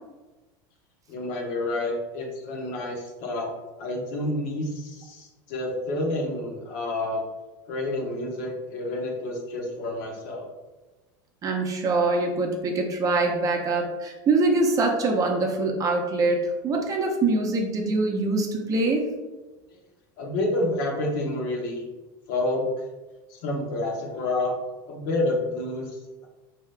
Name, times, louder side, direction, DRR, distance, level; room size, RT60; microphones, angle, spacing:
voice 1, 1.1-3.5 3.8-7.2 7.7-10.5 20.2-21.8 22.3-22.8 23.3-24.5 24.9-26.3, left 2 dB, 65° left, 0 dB, 0.8 m, -29 dB
voice 2, 11.4-19.1, right 3 dB, 30° right, 2 dB, 0.6 m, -24 dB
2.8 x 2.3 x 3.3 m, 1.1 s
supercardioid pair, 110°, 11 cm